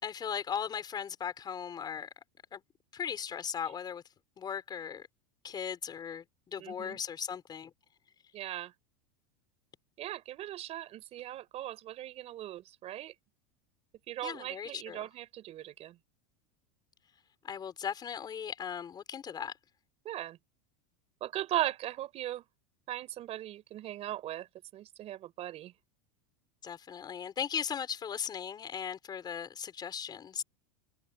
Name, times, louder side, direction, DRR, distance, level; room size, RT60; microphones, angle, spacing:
voice 1, 0.0-2.1 2.5-2.6 2.9-4.0 4.4-5.1 5.4-7.7 14.2-15.1 17.4-19.5 26.6-30.4, left 8 dB, 20° left, 5.1 m, -38 dB
voice 2, 6.6-7.0 8.3-8.7 10.0-13.1 14.1-16.0 20.0-20.4 21.2-22.4 22.9-24.5 24.7-25.7, right 13 dB, 35° right, 5.0 m, -38 dB
supercardioid pair, 155°, 19 cm